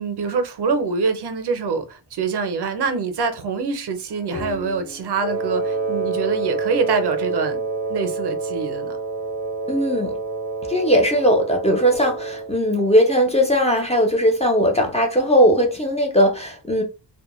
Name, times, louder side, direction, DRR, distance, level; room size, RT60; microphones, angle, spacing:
voice 1, 0.0-7.6 7.9-9.0, right 4 dB, 65° right, 0.6 m, -25 dB
sound 1, 4.1-9.1, left 4 dB, 75° left, 1.2 m, -40 dB
Wind instrument woodwind instrument, 5.2-12.5, right 3 dB, 40° left, 1.2 m, -27 dB
voice 2, 9.7-10.1 10.7-16.8, equal, 15° left, 0.4 m, -18 dB
2.2 x 2.1 x 2.9 m
wide cardioid pair, 140°, 44 cm